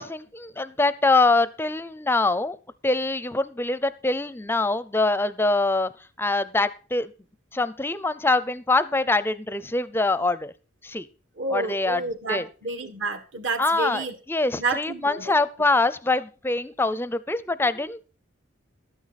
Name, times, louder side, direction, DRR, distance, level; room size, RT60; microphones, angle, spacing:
voice 1, 0.0-2.6 2.8-5.9 6.2-7.1 7.5-10.5 10.8-11.1 11.5-12.0 12.3-12.5 13.6-18.0, left 2 dB, 10° left, 16 dB, 0.5 m, -24 dB
voice 2, 11.4-14.2 14.6-15.4, right 3 dB, 65° right, 8 dB, 1.6 m, -30 dB
12.5 x 9.7 x 4.1 m, 0.36 s
head